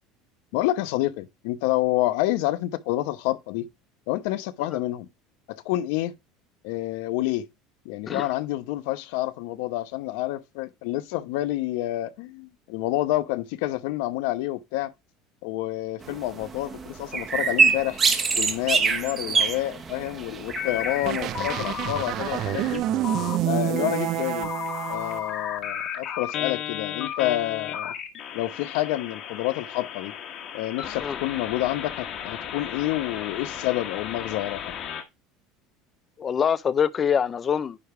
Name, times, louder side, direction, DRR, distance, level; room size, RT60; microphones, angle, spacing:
voice 1, 0.5-3.7 4.1-5.1 5.5-6.1 6.6-7.5 7.8-14.9 15.4-18.0 18.3-22.8 23.4-24.5 24.9-27.9 28.3-30.1 30.5-34.7, left 16 dB, 70° left, 0.8 m, -28 dB
sound 1, 16.0-22.8, right 5 dB, 20° right, 1.0 m, -26 dB
sound 2, 20.6-21.1 21.3-22.8 23.0-23.4 23.8-35.0, left 9 dB, 40° left, 1.2 m, -34 dB
sound 3, 21.0-25.2, right 12 dB, 40° right, 0.5 m, -28 dB
voice 2, 36.2-37.8, left 7 dB, 25° left, 0.4 m, -24 dB
9.9 x 3.4 x 4.6 m
cardioid pair, 160°, 0 cm